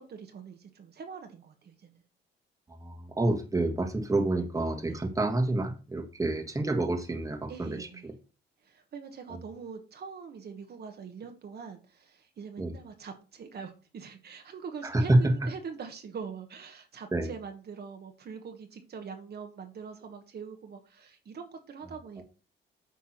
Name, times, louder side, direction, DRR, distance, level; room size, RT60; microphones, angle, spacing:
voice 1, 0.0-2.0 4.9-5.1 7.5-8.1 8.6-22.2, right 6 dB, 55° right, 5 dB, 1.4 m, -43 dB
voice 2, 2.8-7.8 12.6-12.7 14.8-15.2 17.1-17.3, right 2 dB, 15° right, 5 dB, 1.6 m, -28 dB
8.7 x 3.5 x 5.9 m, 0.34 s
cardioid pair, 90°, 20 cm